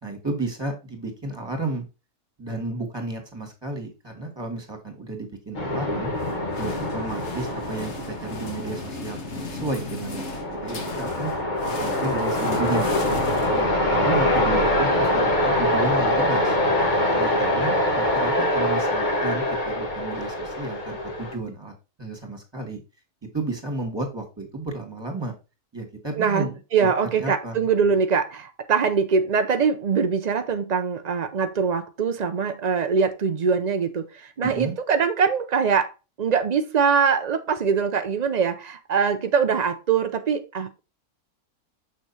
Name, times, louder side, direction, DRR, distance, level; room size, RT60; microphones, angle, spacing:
voice 1, 0.0-1.9 2.4-6.1 6.6-10.2 10.6-11.3 11.8-16.6 17.2-21.7 22.0-22.8 23.3-25.3 25.7-26.5 26.8-26.9 27.2-27.6 27.8-28.0 34.4-34.7, right 2 dB, 15° right, 2.3 m, -32 dB
sound 1, 5.5-21.3, left 1 dB, 30° left, 1.5 m, -24 dB
sound 2, 6.2-14.1, left 3 dB, 50° left, 1.6 m, -36 dB
voice 2, 26.2-35.9 36.2-40.8, right 6 dB, 65° right, 0.4 m, -23 dB
6.8 x 6.4 x 2.8 m
omnidirectional pair, 1.6 m